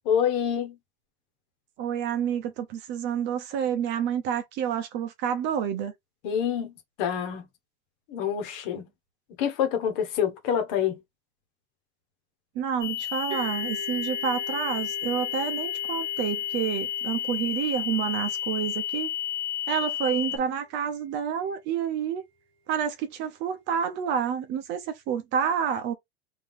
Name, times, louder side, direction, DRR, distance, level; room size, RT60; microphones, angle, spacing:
voice 1, 0.0-0.7 6.2-6.7 7.0-7.5 8.1-8.9 9.4-11.0, left 8 dB, 55° left, 1.4 m, -26 dB
voice 2, 1.8-5.9 12.5-19.1 19.7-22.2 22.7-25.9, right 8 dB, 35° right, 0.7 m, -29 dB
sound 1, 12.8-20.4, left 11 dB, 10° left, 0.4 m, -31 dB
sound 2, 13.3-20.8, right 2 dB, 15° right, 1.4 m, -44 dB
3.6 x 2.9 x 3.6 m
supercardioid pair, 165°, 32 cm